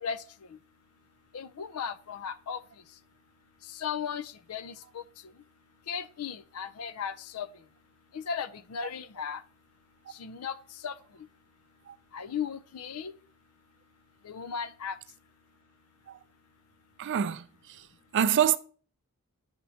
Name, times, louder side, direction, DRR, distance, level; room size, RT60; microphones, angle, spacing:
voice 1, 1.3-2.6 3.7-5.0 5.9-7.5 8.1-9.4 10.1-10.6 10.8-10.9 12.1-13.1 14.2-15.0, left 7 dB, 75° left, 0.5 m, -36 dB
voice 2, 17.0-17.8 18.1-18.6, right 9 dB, 55° right, 0.3 m, -26 dB
10.0 x 4.4 x 2.7 m
head